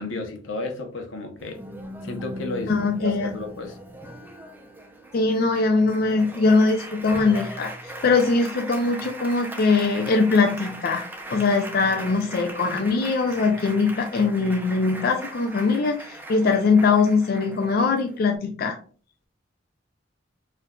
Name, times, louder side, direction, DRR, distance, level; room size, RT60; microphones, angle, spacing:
voice 1, 0.0-1.6 2.0-3.8, left 2 dB, 85° left, 5 dB, 0.8 m, -32 dB
Applause, 1.4-18.4, right 1 dB, 10° right, 0.5 m, -39 dB
voice 2, 2.7-3.3 5.1-7.7 8.0-11.0 11.3-18.8, left 4 dB, 55° left, 3 dB, 0.4 m, -21 dB
4.4 x 2.5 x 2.2 m, 0.41 s
head